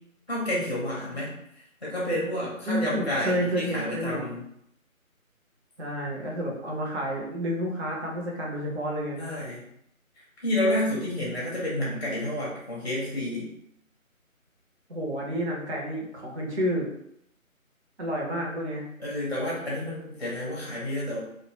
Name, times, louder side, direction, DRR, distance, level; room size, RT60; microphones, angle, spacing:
voice 1, 0.3-1.3 1.8-4.4 9.2-9.6 10.4-13.5 19.0-21.2, left 1 dB, 35° left, -5 dB, 0.6 m, -29 dB
voice 2, 2.6-4.4 5.8-9.2 14.9-16.9 18.0-18.9, equal, 50° right, -2 dB, 0.7 m, -30 dB
2.1 x 2.1 x 2.9 m, 0.74 s
figure-of-eight pair, 160°, 42 cm